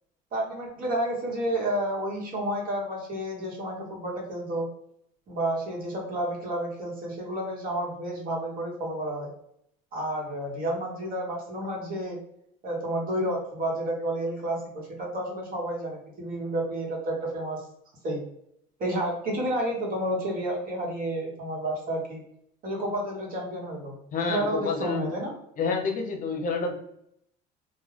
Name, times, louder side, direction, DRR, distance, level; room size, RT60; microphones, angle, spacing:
voice 1, 0.3-4.7 5.3-9.3 9.9-12.2 12.6-17.6 18.0-18.2 18.8-22.2 22.6-24.0 24.2-25.3, right 1 dB, 50° right, -1 dB, 1.1 m, -30 dB
voice 2, 24.1-25.1 25.6-26.7, left 4 dB, 45° left, 2 dB, 0.7 m, -28 dB
2.2 x 2.2 x 3.3 m, 0.73 s
supercardioid pair, 95°, 19 cm